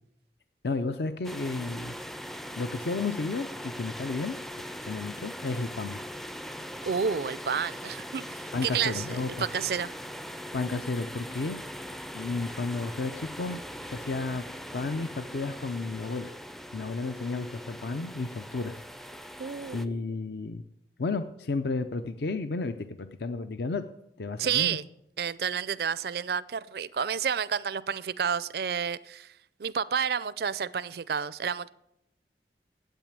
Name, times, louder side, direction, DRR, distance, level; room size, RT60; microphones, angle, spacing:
voice 1, 0.6-1.9 2.5-4.4 4.9-6.0 8.5-9.5 10.5-11.6 12.1-14.5 14.7-16.3 16.7-18.8 19.7-20.6 21.0-23.8 24.2-24.8, left 3 dB, 65° left, 0.6 m, -32 dB
sound 1, 1.2-19.9, equal, ahead, 0.4 m, -41 dB
voice 2, 6.8-9.9 19.4-20.2 24.4-24.8 25.2-29.3 29.6-31.7, right 7 dB, 60° right, 0.4 m, -30 dB
9.1 x 8.4 x 8.8 m
head